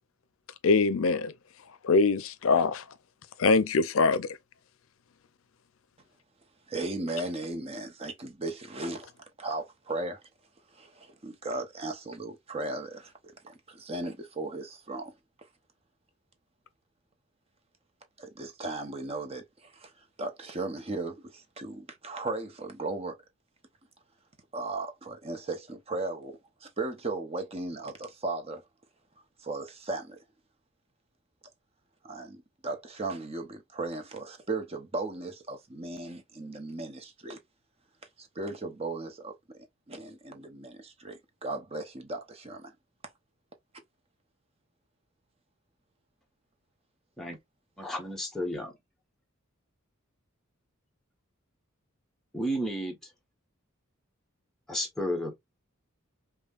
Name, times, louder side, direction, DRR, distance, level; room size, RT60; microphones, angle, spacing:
voice 1, 0.6-1.3 1.8-2.8 3.4-4.3, left 4 dB, 70° left, 0.5 m, -23 dB
voice 2, 6.7-9.1 9.4-10.2 10.7-13.1 13.4-15.1 18.2-23.2 24.5-28.6 29.4-30.2 32.0-37.4 38.2-42.7, right 2 dB, 30° right, 0.8 m, -36 dB
voice 3, 47.8-48.8 52.3-53.0 54.7-55.4, equal, ahead, 1.1 m, -32 dB
5.3 x 2.2 x 2.4 m
head